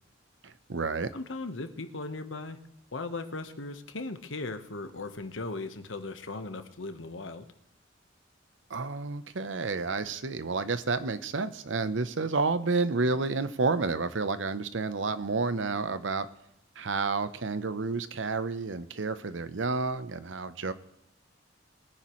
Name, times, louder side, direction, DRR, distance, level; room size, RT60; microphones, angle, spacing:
voice 1, 0.4-1.1 8.7-16.3 16.8-20.7, right 3 dB, 75° right, 13 dB, 0.8 m, -30 dB
voice 2, 1.1-2.6 2.9-7.5, left 3 dB, 85° left, 8 dB, 1.2 m, -38 dB
22.0 x 10.0 x 3.1 m, 0.83 s
head